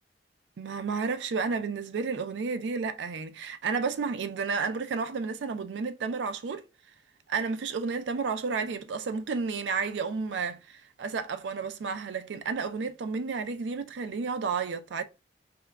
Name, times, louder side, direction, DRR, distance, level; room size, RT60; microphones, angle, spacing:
voice 1, 0.6-6.6 7.3-15.0, right 5 dB, 85° right, 0.4 m, -31 dB
4.8 x 2.1 x 2.2 m
head